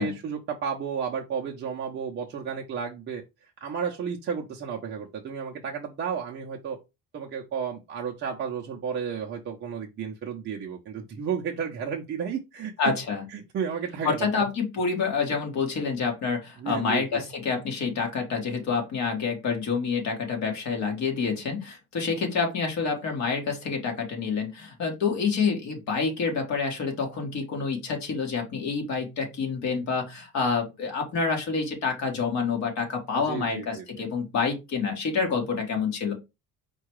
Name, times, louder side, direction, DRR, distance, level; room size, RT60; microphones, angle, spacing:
voice 1, 0.0-6.8 7.1-12.7 13.3-14.5 16.6-17.2 33.2-34.0, right 7 dB, 30° right, 0.5 m, -33 dB
voice 2, 12.8-13.2 14.0-36.1, left 5 dB, 45° left, 1.4 m, -28 dB
4.7 x 2.2 x 4.6 m
cardioid pair, 180°, 39 cm